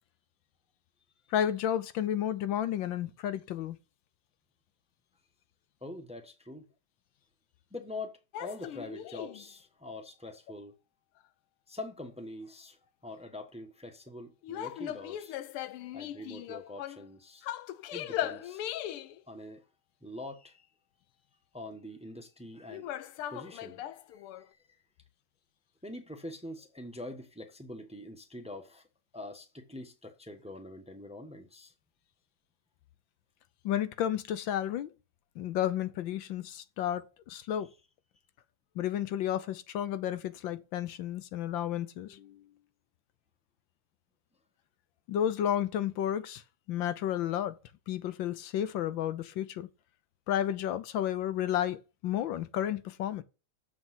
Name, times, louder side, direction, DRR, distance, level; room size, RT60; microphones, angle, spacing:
voice 1, 1.3-3.8 33.6-34.9 35.4-37.7 38.8-42.4 45.1-46.4 46.7-47.6 47.9-49.7 50.3-53.2, left 10 dB, 70° left, 1.4 m, -32 dB
voice 2, 5.8-6.6 7.7-8.1 8.4-10.7 11.7-12.8 13.0-15.4 15.9-17.5 17.9-18.6 19.3-19.6 20.0-20.7 21.5-24.5 25.8-28.8 29.1-31.7, left 1 dB, 5° right, 0.6 m, -44 dB
sound 1, 8.3-9.4 14.4-17.1 17.4-19.2 22.7-24.4, left 12 dB, 85° left, 1.6 m, -38 dB
7.2 x 6.4 x 7.5 m
omnidirectional pair, 2.4 m